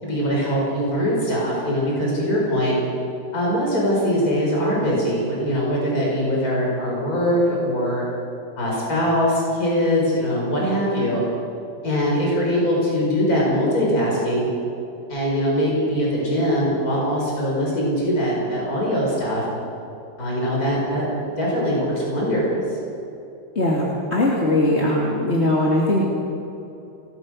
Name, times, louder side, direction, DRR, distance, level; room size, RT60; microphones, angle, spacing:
voice 1, 0.0-2.8 3.3-8.0 8.6-11.2 11.8-14.5 15.1-19.5 20.2-22.8, equal, 50° left, -4 dB, 5.7 m, -22 dB
voice 2, 24.1-26.1, left 1 dB, 35° left, -4 dB, 3.1 m, -20 dB
27.5 x 20.0 x 6.5 m, 2.8 s
omnidirectional pair, 2.0 m